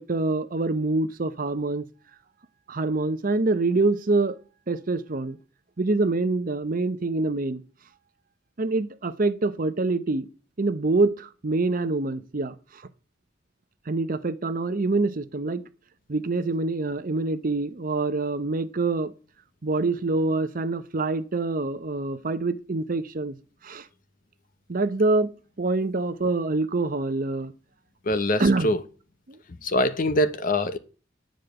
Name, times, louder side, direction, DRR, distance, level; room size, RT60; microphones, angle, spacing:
voice 1, 0.0-1.8 2.7-4.4 4.7-5.4 5.8-7.6 8.6-10.3 10.6-12.8 13.9-15.6 16.1-19.1 19.6-23.4 23.6-23.9 24.7-25.3 25.6-27.5 28.4-28.7 29.3-29.4, right 3 dB, 45° right, 0.7 m, -25 dB
voice 2, 28.0-28.8 29.6-30.8, left 1 dB, 45° left, 0.9 m, -24 dB
9.7 x 5.2 x 7.9 m
head